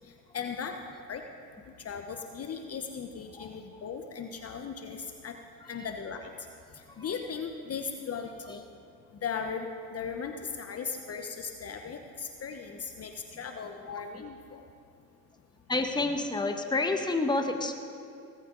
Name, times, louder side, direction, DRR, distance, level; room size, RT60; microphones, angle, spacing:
voice 1, 0.3-0.8 1.1-1.2 1.8-5.4 5.7-6.3 6.7-8.7 9.2-14.6, left 6 dB, 35° left, 5 dB, 1.1 m, -37 dB
voice 2, 15.7-17.7, left 2 dB, 10° left, 6 dB, 1.3 m, -29 dB
17.5 x 14.5 x 4.0 m, 2.4 s
hypercardioid pair, 75°, 43 cm